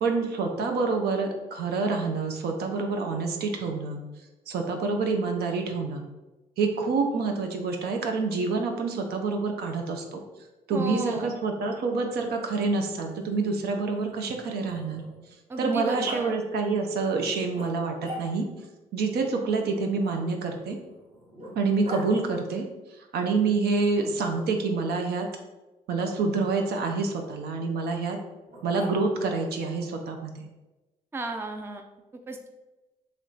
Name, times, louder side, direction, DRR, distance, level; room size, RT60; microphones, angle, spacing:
voice 1, 0.0-4.0 4.5-6.0 6.6-10.2 10.7-15.0 15.6-18.5 18.9-20.8 21.6-22.7 23.0-25.3 25.9-28.2 28.6-30.5, right 4 dB, 60° right, 4 dB, 0.6 m, -27 dB
voice 2, 10.7-11.3 15.5-16.3 31.1-31.9 32.3-32.5, right 2 dB, 10° right, 5 dB, 0.4 m, -34 dB
Growling, 12.0-15.4 16.0-16.2 17.5-18.6 20.0-22.1 23.9-24.6 25.9-26.1 28.5-29.3, equal, 30° right, 1.2 m, -43 dB
3.1 x 3.0 x 3.9 m, 1.1 s
hypercardioid pair, 45°, 19 cm